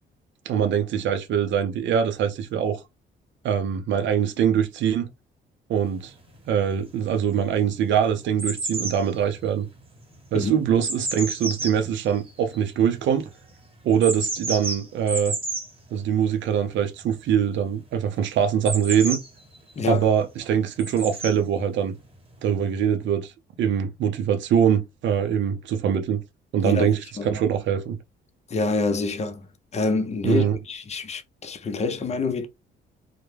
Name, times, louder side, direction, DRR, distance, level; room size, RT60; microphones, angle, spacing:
voice 1, 0.5-2.8 3.4-5.1 5.7-6.1 6.5-9.7 10.3-13.3 13.8-15.3 15.9-19.2 19.9-21.9 22.4-23.3 23.6-26.2 26.5-28.0 30.2-30.5, right 8 dB, 70° right, 0.5 m, -23 dB
sound 1, 6.1-6.2 6.8-7.4 7.7-13.0 13.9-15.7 18.7-19.7 20.8-21.4 22.3-22.4, right 2 dB, 30° right, 1.0 m, -31 dB
voice 2, 19.8-20.1 26.6-27.4 28.5-29.5 29.7-32.5, left 3 dB, 35° left, 0.5 m, -27 dB
2.2 x 2.1 x 3.1 m
cardioid pair, 90°, 20 cm